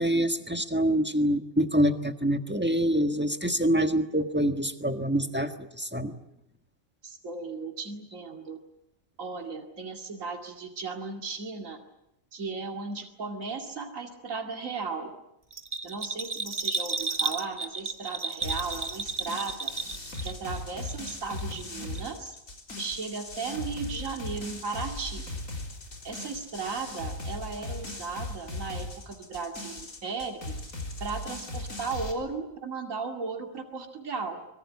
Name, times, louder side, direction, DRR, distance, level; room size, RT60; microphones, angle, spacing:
voice 1, 0.0-6.1, equal, 10° right, 6 dB, 1.4 m, -26 dB
voice 2, 7.0-8.6 9.2-11.8 12.3-15.1 15.8-19.7 20.2-22.4 22.8-25.2 26.0-30.6 31.0-34.4, right 4 dB, 75° right, 3 dB, 2.7 m, -36 dB
Bell, 15.5-20.6 20.9-21.7 22.0-22.1, right 3 dB, 25° right, 1.4 m, -33 dB
sound 1, 18.4-32.1, left 2 dB, 75° left, 4.2 m, -38 dB
25.0 x 22.5 x 8.4 m, 0.82 s
omnidirectional pair, 1.4 m